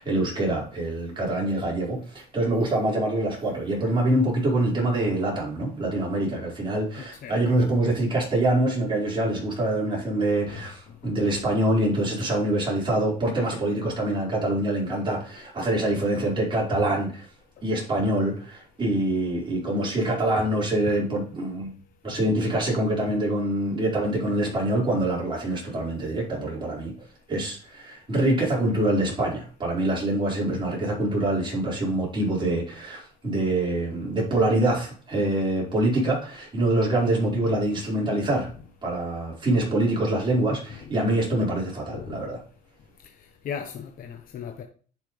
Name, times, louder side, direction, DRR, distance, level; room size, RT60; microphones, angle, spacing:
voice 1, 0.0-17.2 17.6-21.7 22.0-38.5 38.8-42.4, right 1 dB, 30° right, 4.9 m, -25 dB
voice 2, 7.0-7.4 10.5-10.7 11.0-11.4 22.1-22.5 37.4-37.6 40.8-40.9 41.9-42.2 43.4-44.6, left 7 dB, 55° left, 1.0 m, -38 dB
10.5 x 5.8 x 3.3 m
cardioid pair, 110°, 17 cm